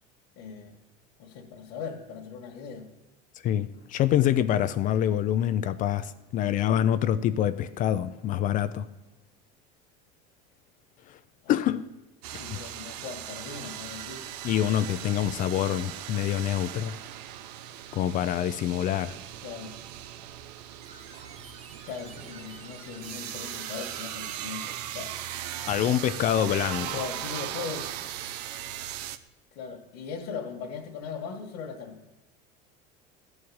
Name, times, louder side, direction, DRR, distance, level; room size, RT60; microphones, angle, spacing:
voice 1, 0.3-0.8 1.2-2.9 11.4-11.7 12.4-14.2 19.4-19.7 21.9-25.2 26.8-27.9 29.5-32.0, left 6 dB, 70° left, 1.6 m, -39 dB
voice 2, 3.4-8.9 11.5-11.8 12.5-12.6 14.4-17.0 17.9-19.2 25.7-27.0, left 11 dB, 40° left, 0.5 m, -26 dB
sound 1, 12.2-29.2, right 11 dB, 90° right, 0.7 m, -38 dB
sound 2, 20.8-26.2, right 4 dB, 30° right, 1.3 m, -50 dB
12.5 x 4.8 x 8.6 m
supercardioid pair, 130°, 20 cm